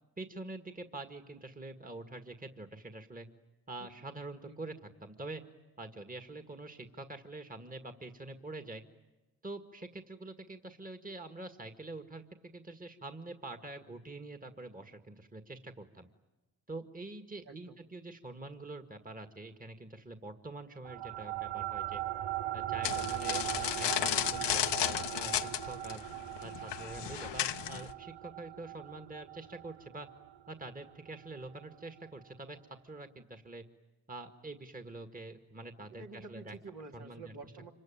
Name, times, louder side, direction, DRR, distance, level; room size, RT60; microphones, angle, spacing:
voice 1, 0.2-3.3 3.7-5.4 5.8-8.8 9.4-16.1 16.7-22.0 22.5-26.0 26.4-30.1 30.5-32.6 32.8-33.6 34.1-36.6 36.9-37.2, right 2 dB, 20° right, 6 dB, 1.9 m, -45 dB
voice 2, 17.4-17.8 36.0-37.7, right 3 dB, 65° right, 1 dB, 3.1 m, -48 dB
sound 1, 20.8-31.6, right 14 dB, 80° right, 1.1 m, -39 dB
sound 2, 22.8-27.9, left 11 dB, 75° left, 0.9 m, -34 dB
26.0 x 24.0 x 9.0 m, 1.1 s
cardioid pair, 55°, 42 cm